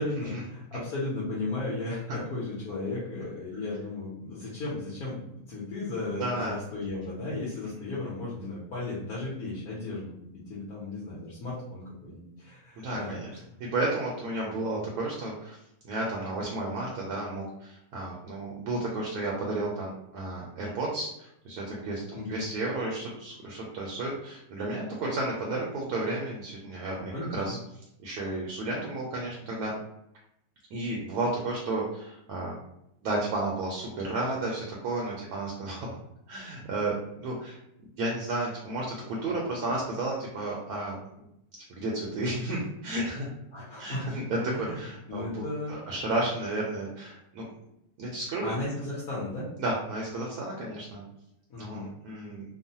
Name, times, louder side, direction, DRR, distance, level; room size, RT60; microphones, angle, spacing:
voice 1, 0.0-10.1 10.5-13.4 22.1-22.4 27.1-27.6 43.5-44.1 44.5-45.9 48.4-49.5 51.5-51.9, left 2 dB, 65° left, -6 dB, 1.2 m, -35 dB
voice 2, 6.2-6.6 12.8-13.3 13.6-15.6 15.8-27.6 28.0-29.7 30.7-32.6 33.0-36.0 36.3-37.6 38.0-41.0 41.7-43.3 43.8-47.5 48.0-48.5 49.6-51.0 51.6-52.4, right 2 dB, 70° right, -3 dB, 1.0 m, -32 dB
3.0 x 2.1 x 2.7 m, 0.80 s
omnidirectional pair, 1.9 m